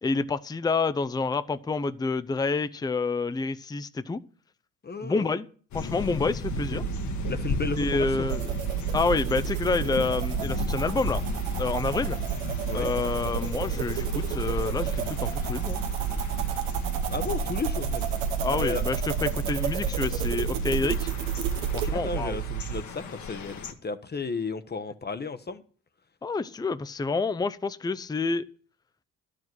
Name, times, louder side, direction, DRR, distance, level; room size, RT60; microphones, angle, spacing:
voice 1, 0.0-4.2 5.0-5.5 5.7-6.8 7.8-8.5 8.9-11.2 11.6-12.2 12.7-15.8 18.4-21.1 21.7-22.4 26.2-28.4, left 4 dB, 10° left, 0.5 m, -28 dB
voice 2, 4.8-5.3 6.7-6.8 7.3-8.3 12.7-12.9 17.1-18.1 18.4-18.8 21.8-25.6, left 4 dB, 30° left, 0.9 m, -33 dB
sound 1, 5.7-23.7, left 5 dB, 55° left, 1.4 m, -36 dB
sound 2, 6.4-22.8, right 18 dB, 75° right, 0.5 m, -33 dB
sound 3, 8.3-21.9, right 6 dB, 90° right, 1.1 m, -33 dB
12.0 x 5.0 x 7.7 m
supercardioid pair, 60°, 34 cm